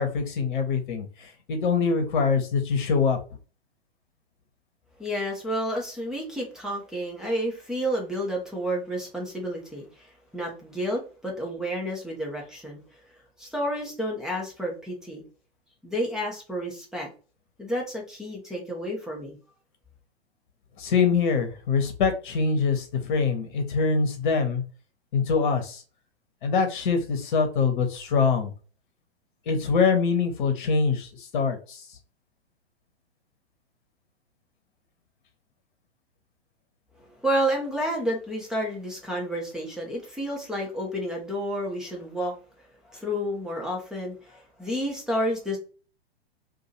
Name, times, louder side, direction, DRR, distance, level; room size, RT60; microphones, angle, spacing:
voice 1, 0.0-3.2 20.8-24.6 25.1-25.8 26.4-28.5 29.5-31.8, left 5 dB, 50° left, 6 dB, 1.1 m, -24 dB
voice 2, 5.0-12.8 13.4-15.2 15.8-17.1 17.6-19.4 37.0-42.3 42.9-45.6, equal, ahead, -2 dB, 0.7 m, -30 dB
2.7 x 2.6 x 4.0 m, 0.36 s
figure-of-eight pair, 115°, 32 cm